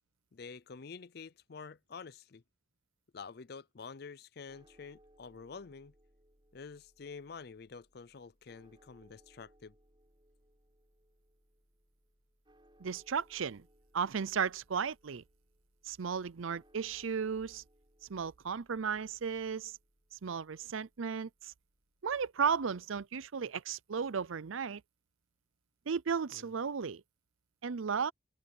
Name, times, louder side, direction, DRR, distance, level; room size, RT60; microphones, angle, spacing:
voice 1, 0.3-2.4 3.1-5.9 6.5-9.7 26.3-26.5, left 5 dB, 50° left, 0.5 m, -48 dB
sound 1, 4.5-22.7, equal, 25° right, 6.9 m, -68 dB
voice 2, 12.8-13.7 13.9-15.2 15.8-17.6 18.1-19.8 20.2-21.5 22.0-24.8 25.9-27.0 27.6-28.1, right 6 dB, 85° right, 0.6 m, -35 dB
open air
head